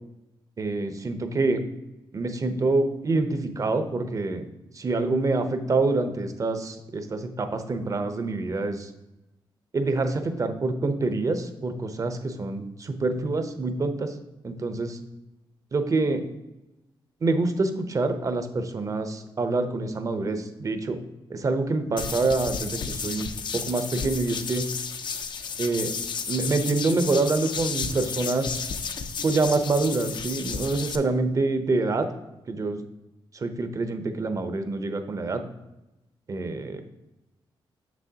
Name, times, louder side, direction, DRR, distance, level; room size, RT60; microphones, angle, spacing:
voice 1, 0.6-1.6 2.1-4.5 4.7-8.9 9.7-14.2 14.4-15.0 15.7-16.3 17.2-21.0 21.3-24.7 25.6-26.0 26.3-28.7 29.2-32.1 32.5-32.8 33.3-35.4 36.3-36.8, right 3 dB, 40° right, 8 dB, 0.7 m, -26 dB
sound 1, 22.0-31.0, left 6 dB, 60° left, 0.5 m, -33 dB
7.1 x 6.1 x 2.8 m, 0.97 s
cardioid pair, 100°, 9 cm